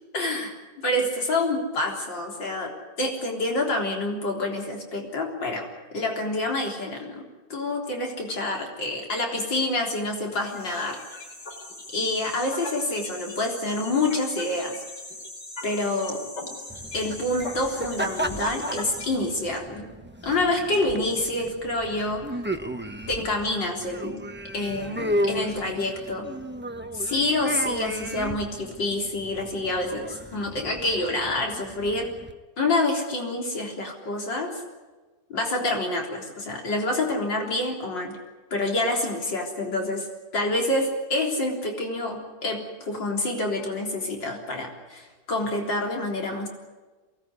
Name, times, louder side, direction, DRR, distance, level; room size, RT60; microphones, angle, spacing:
voice 1, 0.1-0.5 0.8-2.7 3.0-7.2 7.5-11.0 11.9-14.7 15.6-16.2 16.9-19.9 20.2-22.4 23.1-24.2 24.5-26.3 26.9-32.1 32.6-34.6 35.3-38.2 38.5-40.1 40.3-46.5, left 2 dB, 90° left, 1 dB, 4.5 m, -27 dB
sound 1, 10.3-19.1, left 2 dB, 70° left, 5.0 m, -39 dB
sound 2, 16.7-32.3, right 1 dB, 10° right, 0.8 m, -34 dB
23.5 x 18.5 x 9.6 m, 1.3 s
omnidirectional pair, 1.9 m